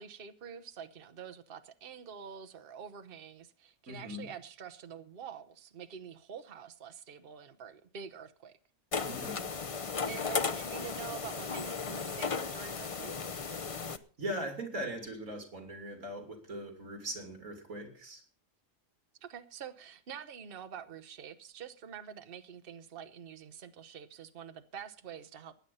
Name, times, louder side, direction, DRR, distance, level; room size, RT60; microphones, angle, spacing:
voice 1, 0.0-8.6 10.1-13.3 19.2-25.5, right 7 dB, 45° right, 1.1 m, -46 dB
voice 2, 3.9-4.3 9.1-9.5 14.2-18.2, right 1 dB, 80° right, 3.3 m, -40 dB
sound 1, 8.9-14.0, left 5 dB, 35° left, 0.6 m, -35 dB
16.5 x 10.5 x 5.6 m
omnidirectional pair, 1.4 m